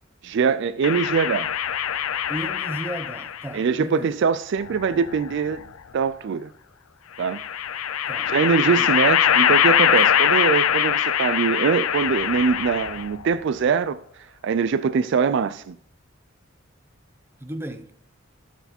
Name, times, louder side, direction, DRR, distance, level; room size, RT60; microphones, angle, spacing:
voice 1, 0.2-1.5 3.5-5.6 5.9-6.5 7.2-7.4 8.3-14.0 14.4-15.8, right 6 dB, 60° right, 0.3 m, -22 dB
sound 1, 0.8-3.5 4.6-5.6 7.2-13.2, left 9 dB, 85° left, 0.5 m, -22 dB
voice 2, 2.3-4.2 8.1-8.3 8.6-8.9 17.4-17.9, right 1 dB, 10° right, 0.6 m, -34 dB
11.5 x 4.7 x 4.3 m
head